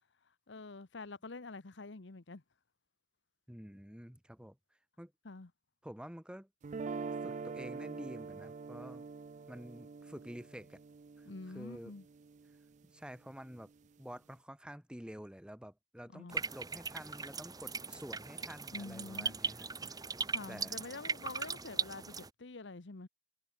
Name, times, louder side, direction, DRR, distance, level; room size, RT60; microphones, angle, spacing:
voice 1, 0.5-2.4 5.2-5.5 11.2-12.0 16.1-16.4 18.7-19.4 20.3-23.1, left 3 dB, 75° left, 1.0 m, -47 dB
voice 2, 3.5-4.6 5.0-5.1 5.8-6.5 7.2-9.0 9.5-10.8 11.2-11.3 11.5-11.9 12.9-13.7 14.0-20.0 20.5-20.7, equal, 5° right, 1.4 m, -49 dB
sound 1, 6.6-12.7, right 4 dB, 40° right, 0.4 m, -44 dB
sound 2, 16.3-22.3, right 4 dB, 20° right, 2.1 m, -39 dB
head